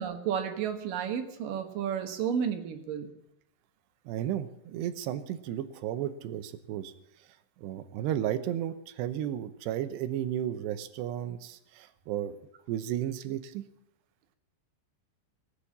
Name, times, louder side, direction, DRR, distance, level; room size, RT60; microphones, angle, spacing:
voice 1, 0.0-3.1, right 8 dB, 65° right, 6 dB, 2.7 m, -32 dB
voice 2, 4.1-6.9 7.6-12.4 12.7-13.6, right 11 dB, 90° right, 11 dB, 3.1 m, -33 dB
20.0 x 8.3 x 8.5 m, 0.82 s
omnidirectional pair, 4.8 m